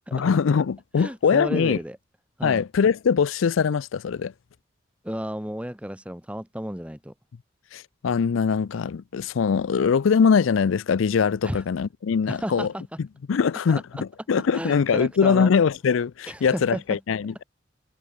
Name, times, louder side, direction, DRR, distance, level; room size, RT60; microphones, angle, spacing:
voice 1, 0.1-1.8 2.4-4.3 7.7-12.7 13.3-17.4, left 6 dB, 85° left, 0.4 m, -22 dB
voice 2, 1.0-2.0 2.4-2.6 5.0-7.1 11.4-11.6 12.3-12.8 13.7-14.0 14.5-15.5 16.3-17.0, equal, 5° right, 3.5 m, -33 dB
head